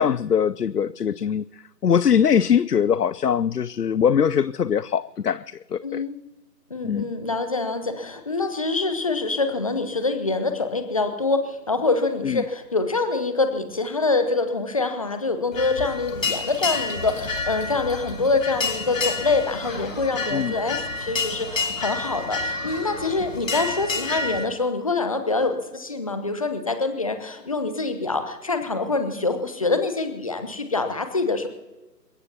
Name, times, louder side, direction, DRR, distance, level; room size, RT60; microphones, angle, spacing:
voice 1, 0.0-6.0 6.8-7.1 12.2-12.4 20.3-20.5, left 8 dB, 70° left, 0.6 m, -22 dB
voice 2, 5.8-6.2 6.7-31.5, left 3 dB, 20° left, 1.0 m, -25 dB
sound 1, 15.5-24.4, left 3 dB, 50° left, 2.3 m, -29 dB
sound 2, 17.8-23.3, right 1 dB, 25° right, 3.1 m, -46 dB
28.5 x 16.0 x 2.8 m
figure-of-eight pair, 150°, 50 cm